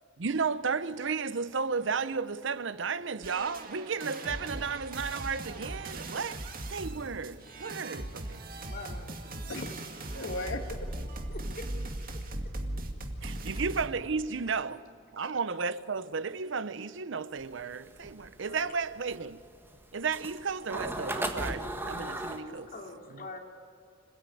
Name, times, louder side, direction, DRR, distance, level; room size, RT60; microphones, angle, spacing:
voice 1, 0.2-8.4 13.2-14.9 15.1-19.4 19.9-22.7, right 5 dB, 70° right, 0.7 m, -33 dB
sound 1, 3.2-13.9, right 1 dB, 50° right, 2.2 m, -39 dB
voice 2, 8.7-9.2 11.3-11.7 12.0-12.5 13.5-13.6 14.5-14.6 15.2-15.3 18.4-18.8 22.2-23.4, left 2 dB, 50° left, 3.1 m, -46 dB
voice 3, 9.5-11.1, left 2 dB, 90° left, 1.9 m, -38 dB
sound 2, 17.4-22.4, right 1 dB, 10° right, 1.5 m, -36 dB
26.5 x 16.5 x 9.2 m
head